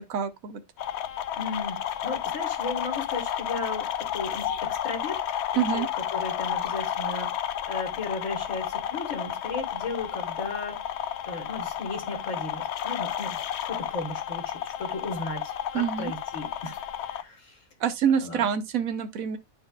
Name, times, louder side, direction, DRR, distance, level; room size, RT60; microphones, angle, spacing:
voice 1, 0.1-0.6 5.6-5.9 15.7-16.1 17.8-19.4, right 8 dB, 65° right, 1.0 m, -26 dB
sound 1, 0.8-17.2, left 10 dB, 85° left, 0.5 m, -32 dB
voice 2, 1.3-5.2 5.5-5.8 6.1-10.8 11.2-13.4 13.7-17.6 18.2-18.5, left 3 dB, 50° left, 1.9 m, -36 dB
10.5 x 4.4 x 2.3 m
omnidirectional pair, 1.7 m